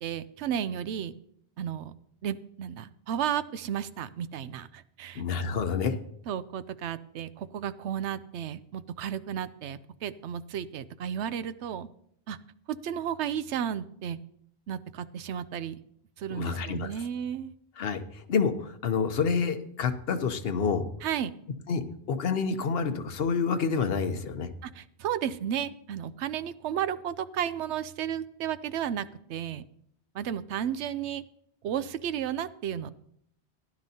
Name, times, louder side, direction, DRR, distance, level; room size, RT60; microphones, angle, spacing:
voice 1, 0.0-1.1 1.6-1.9 2.2-5.2 6.3-11.9 12.3-12.4 12.7-14.2 14.7-15.8 16.2-17.5 21.0-21.3 24.6-29.6 30.1-31.2 31.6-32.9, right 9 dB, 85° right, 14 dB, 0.9 m, -33 dB
voice 2, 5.2-6.0 16.3-16.9 17.8-20.9 21.7-21.8 22.1-24.5, left 5 dB, 65° left, 9 dB, 1.0 m, -28 dB
16.0 x 10.5 x 2.8 m, 0.69 s
omnidirectional pair, 1.1 m